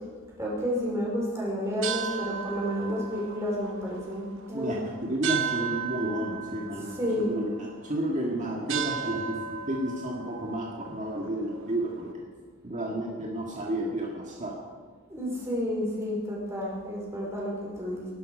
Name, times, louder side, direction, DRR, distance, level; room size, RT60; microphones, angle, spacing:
voice 1, 0.3-4.7 6.9-7.4 15.1-18.1, equal, 15° right, -4 dB, 4.9 m, -30 dB
sound 1, 1.6-12.1, right 8 dB, 60° right, 1.1 m, -36 dB
voice 2, 4.5-12.2 12.6-14.5, right 1 dB, 35° right, -2 dB, 1.8 m, -31 dB
18.5 x 11.5 x 5.4 m, 1.5 s
head